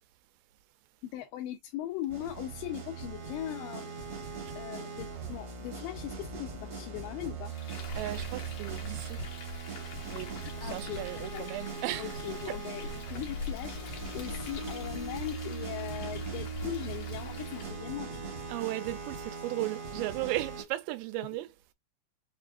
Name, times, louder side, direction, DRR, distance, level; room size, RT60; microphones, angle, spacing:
voice 1, 1.0-4.2 4.6-7.5 10.4-11.5 12.0-13.8 14.1-18.3, left 13 dB, 85° left, 3.0 m, -40 dB
sound 1, 2.1-20.6, right 5 dB, 65° right, 1.4 m, -40 dB
Frying (food), 7.5-17.9, left 3 dB, 65° left, 2.1 m, -43 dB
voice 2, 7.9-9.2 10.1-12.2 12.5-12.6 18.5-21.5, right 17 dB, 90° right, 2.9 m, -36 dB
6.8 x 2.5 x 2.5 m
omnidirectional pair, 5.0 m